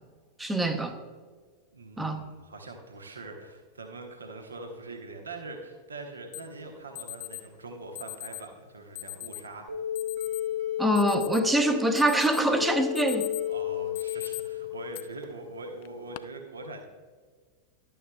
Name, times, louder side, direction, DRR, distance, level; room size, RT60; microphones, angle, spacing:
voice 1, 0.4-0.9 2.0-2.2 10.8-13.3, right 1 dB, 5° right, 0.8 m, -24 dB
voice 2, 1.7-9.7 13.5-16.9, right 2 dB, 75° right, 1.0 m, -42 dB
Alarm, 6.3-6.4 7.0-7.4 8.0-8.4 9.0-9.4 10.0-10.4 10.8-11.6 12.0-12.5 12.8-13.5 14.0-14.4 14.9-15.0 15.8-16.2, left 20 dB, 50° left, 0.3 m, -39 dB
sound 1, 9.7-15.2, left 11 dB, 55° right, 1.3 m, -32 dB
12.0 x 9.1 x 2.2 m
figure-of-eight pair, 90°, 0 cm